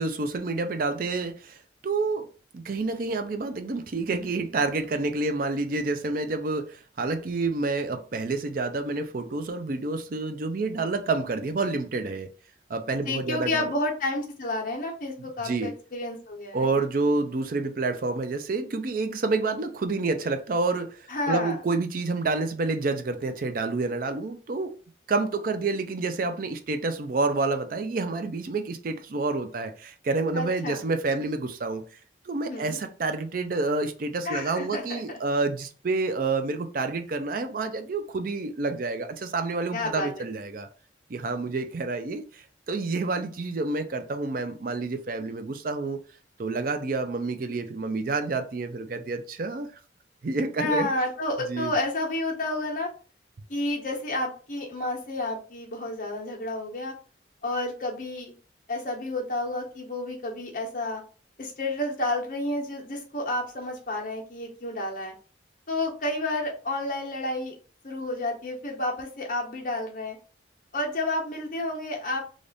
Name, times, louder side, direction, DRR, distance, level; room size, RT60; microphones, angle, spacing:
voice 1, 0.0-1.6 1.8-2.3 2.5-12.3 12.7-13.7 15.4-15.7 16.5-24.7 25.1-31.8 32.3-40.7 41.1-46.0 46.4-49.7 50.2-50.9 51.5-51.7, right 3 dB, 50° right, 0.4 m, -28 dB
voice 2, 13.1-16.7 21.1-21.6 30.3-30.8 32.5-32.8 34.2-35.2 39.7-40.2 50.6-52.9 53.5-56.9 57.4-58.3 58.7-61.0 61.4-65.1 65.7-67.5 67.8-70.2 70.7-72.5, left 2 dB, 45° left, 1.0 m, -30 dB
3.4 x 2.5 x 3.9 m
head